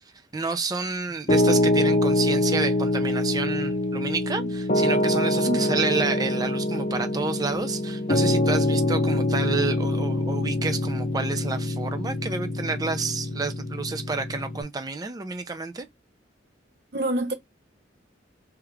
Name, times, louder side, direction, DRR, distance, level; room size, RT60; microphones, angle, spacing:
voice 1, 0.3-15.9, right 4 dB, 20° right, 0.4 m, -29 dB
Piano, 1.3-14.6, left 1 dB, 45° left, 0.7 m, -25 dB
voice 2, 5.4-5.8 16.9-17.3, right 1 dB, 55° right, 0.8 m, -27 dB
3.5 x 2.3 x 3.0 m
head